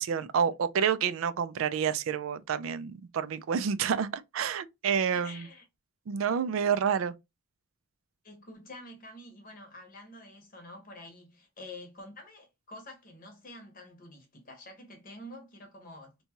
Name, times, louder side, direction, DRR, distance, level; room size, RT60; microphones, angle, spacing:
voice 1, 0.0-5.5 6.1-7.1, right 7 dB, 75° right, 0.4 m, -29 dB
voice 2, 5.2-5.6 8.2-16.2, left 1 dB, 40° left, 0.8 m, -48 dB
2.7 x 2.3 x 2.8 m
head